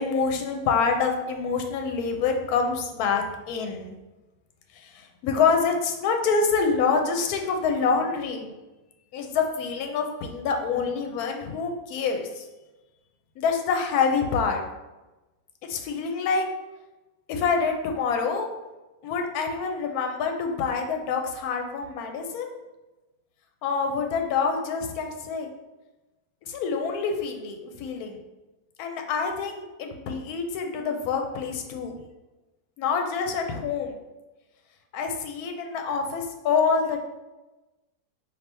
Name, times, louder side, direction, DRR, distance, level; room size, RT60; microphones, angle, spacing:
voice 1, 0.0-3.9 4.7-8.5 9.1-12.5 13.4-14.6 15.7-16.5 17.3-18.5 19.0-22.5 23.6-25.5 26.4-28.2 28.8-32.0 32.8-33.9 34.9-37.1, left 5 dB, 80° left, 4 dB, 1.1 m, -26 dB
4.4 x 2.7 x 3.3 m, 1.1 s
omnidirectional pair, 1.6 m